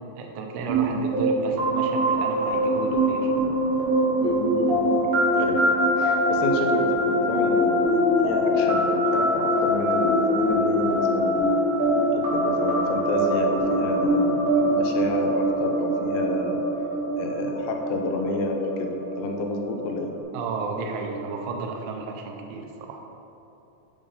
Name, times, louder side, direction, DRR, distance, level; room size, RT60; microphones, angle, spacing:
voice 1, 0.2-3.3 20.3-23.0, right 4 dB, 85° right, 2 dB, 3.1 m, -32 dB
sound 1, 0.7-20.2, equal, 60° right, 2.4 m, -23 dB
voice 2, 4.2-5.0 5.4-5.6 6.0-11.5 12.1-16.6 17.2-20.1, left 3 dB, 85° left, 3 dB, 3.0 m, -30 dB
8.6 x 3.5 x 5.3 m, 2.9 s
omnidirectional pair, 5.5 m